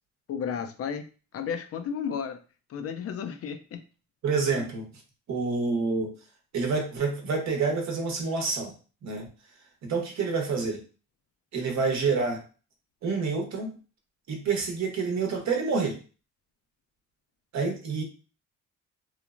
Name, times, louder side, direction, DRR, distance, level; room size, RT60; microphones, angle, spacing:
voice 1, 0.3-1.1 1.3-2.4 2.7-3.8, left 7 dB, 50° left, 8 dB, 0.4 m, -33 dB
voice 2, 4.2-4.9 5.3-6.1 6.5-8.7 9.0-9.3 9.8-10.8 11.5-12.4 13.0-13.7 14.3-16.0 17.5-18.0, right 4 dB, 65° right, 3 dB, 0.8 m, -28 dB
3.1 x 2.0 x 2.4 m, 0.36 s
cardioid pair, 90°, 30 cm